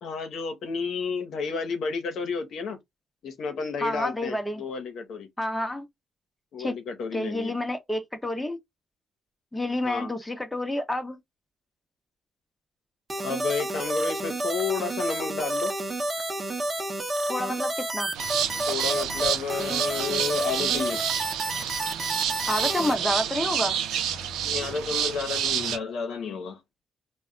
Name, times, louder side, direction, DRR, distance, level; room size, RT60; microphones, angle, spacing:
voice 1, 0.0-2.8 3.2-5.3 6.5-7.6 9.8-10.1 13.2-15.7 18.7-21.1 24.4-26.6, left 5 dB, 70° left, 0.8 m, -31 dB
voice 2, 3.8-4.6 5.4-5.9 6.6-6.7 7.1-8.6 9.5-11.2 17.3-18.1 22.5-23.8, left 1 dB, 10° left, 0.7 m, -29 dB
sound 1, 13.1-22.9, right 2 dB, 25° right, 0.8 m, -30 dB
sound 2, 18.1-25.8, right 9 dB, 90° right, 0.5 m, -29 dB
2.2 x 2.1 x 3.7 m
cardioid pair, 90°, 0 cm